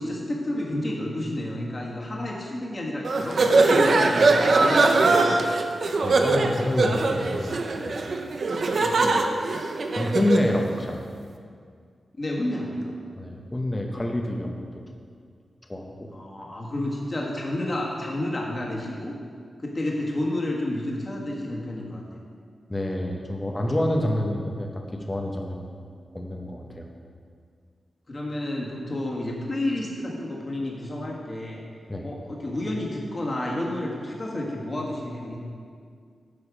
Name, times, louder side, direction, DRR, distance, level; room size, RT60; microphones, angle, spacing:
voice 1, 0.0-5.6 8.7-9.2 12.2-12.9 16.1-19.1 19.6-22.2 28.1-31.6 32.0-35.4, left 1 dB, 30° left, -2 dB, 1.6 m, -30 dB
sound 1, 3.0-10.5, right 3 dB, 55° right, 0.7 m, -21 dB
voice 2, 6.0-7.6 7.8-8.0 9.4-9.6 10.0-11.0 13.2-14.6 15.7-16.1 22.7-24.8 25.1-25.7 26.1-26.9 31.9-32.1, left 1 dB, 15° left, 1 dB, 0.8 m, -27 dB
9.8 x 6.8 x 5.0 m, 2.1 s
wide cardioid pair, 125°, 0 cm